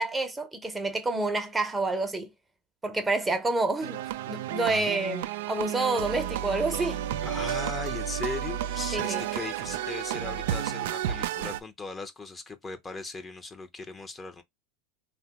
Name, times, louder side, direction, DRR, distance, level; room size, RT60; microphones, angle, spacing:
voice 1, 0.0-2.3 2.8-4.0 4.3-7.0 8.9-9.2, right 2 dB, 15° right, 0.7 m, -28 dB
sound 1, 3.8-11.6, right 11 dB, 75° right, 0.3 m, -32 dB
voice 2, 7.2-14.4, left 3 dB, 20° left, 0.7 m, -38 dB
3.2 x 2.2 x 2.8 m
hypercardioid pair, 100°, 0 cm